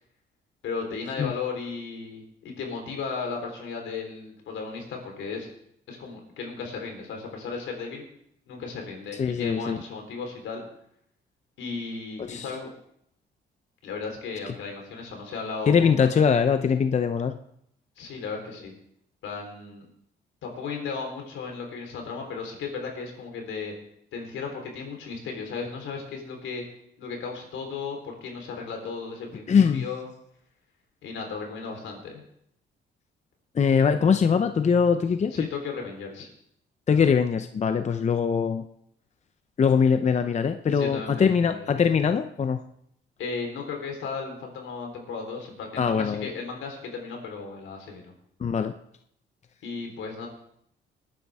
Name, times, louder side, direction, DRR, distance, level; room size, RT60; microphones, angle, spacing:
voice 1, 0.6-5.5 5.9-8.0 8.5-10.6 11.6-12.7 13.8-16.1 18.0-18.7 19.2-19.8 20.4-23.7 24.1-26.6 27.0-30.1 31.0-32.2 35.3-36.3 40.7-41.7 43.2-48.1 49.6-50.3, left 4 dB, 80° left, 2 dB, 3.9 m, -35 dB
voice 2, 9.2-9.8 12.2-12.5 15.7-17.4 29.5-29.9 33.5-35.5 36.9-38.7 39.6-42.6 45.8-46.3 48.4-48.7, left 6 dB, 35° left, 9 dB, 0.7 m, -22 dB
19.0 x 9.8 x 3.6 m, 0.72 s
cardioid pair, 90°, 20 cm